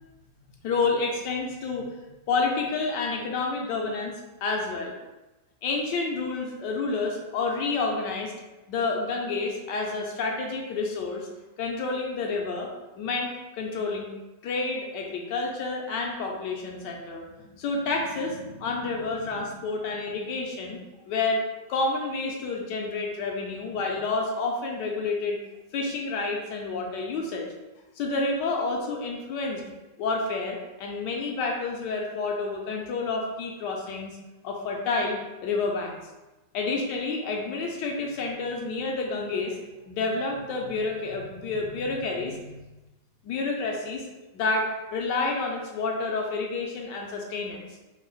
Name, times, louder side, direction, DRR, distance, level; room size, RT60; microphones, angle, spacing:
voice 1, 0.6-1.9 2.3-4.1 4.4-5.0 5.6-8.3 8.7-11.3 11.6-12.7 13.0-14.1 14.4-20.8 21.1-21.4 21.7-25.4 25.7-27.5 28.0-29.6 30.0-34.2 34.4-36.0 36.5-39.6 39.9-42.6 43.2-44.0 44.3-47.7, left 3 dB, 75° left, 1 dB, 1.2 m, -29 dB
3.7 x 2.0 x 3.9 m, 1.1 s
omnidirectional pair, 2.0 m